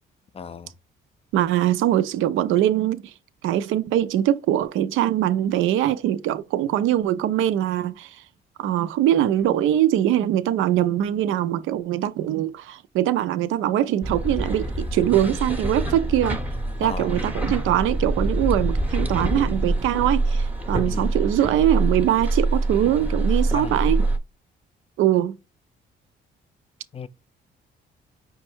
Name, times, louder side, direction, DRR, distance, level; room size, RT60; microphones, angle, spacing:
voice 1, 0.3-0.7 16.8-17.2 20.8-21.1 22.8-23.0 23.5-23.9 26.9-27.1, left 6 dB, 30° left, 0.4 m, -35 dB
voice 2, 1.3-3.0 3.4-8.1 8.6-16.4 16.8-24.0 25.0-25.4, right 12 dB, 85° right, 0.4 m, -22 dB
sound 1, 14.0-24.2, right 2 dB, 10° right, 0.7 m, -25 dB
5.3 x 2.2 x 4.4 m
cardioid pair, 90°, 20 cm